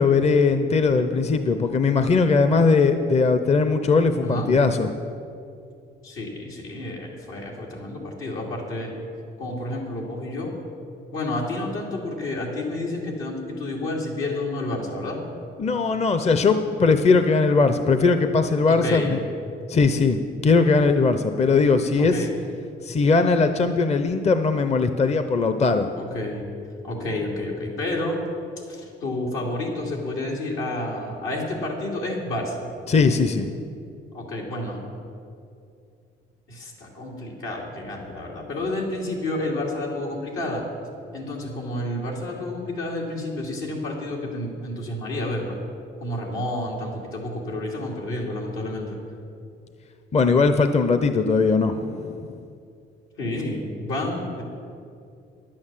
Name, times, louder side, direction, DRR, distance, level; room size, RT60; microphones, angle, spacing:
voice 1, 0.0-4.9 15.6-19.2 19.7-22.2 22.8-25.9 32.9-33.5 50.1-52.3, left 4 dB, 35° left, 9 dB, 0.6 m, -20 dB
voice 2, 6.0-8.9 9.4-10.5 11.1-15.2 18.7-19.1 22.0-22.3 25.9-26.4 26.8-28.2 28.7-32.6 34.1-34.8 36.5-40.6 41.1-45.6 46.0-49.0 53.2-54.4, left 1 dB, 85° left, -2 dB, 2.8 m, -30 dB
11.0 x 8.8 x 7.4 m, 2.5 s
cardioid pair, 90°, 20 cm